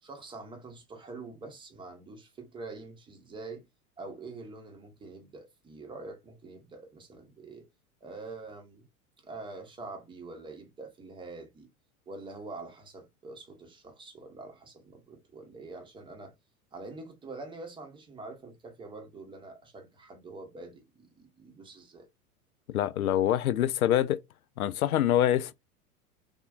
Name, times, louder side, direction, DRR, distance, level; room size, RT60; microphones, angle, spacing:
voice 1, 0.0-3.7 4.0-7.7 8.0-8.9 9.2-11.7 12.1-16.3 16.7-22.1, right 3 dB, 10° right, 0.7 m, -45 dB
voice 2, 22.7-24.2 24.6-25.5, left 11 dB, 70° left, 0.5 m, -25 dB
3.5 x 2.4 x 2.3 m
figure-of-eight pair, 90°, 46 cm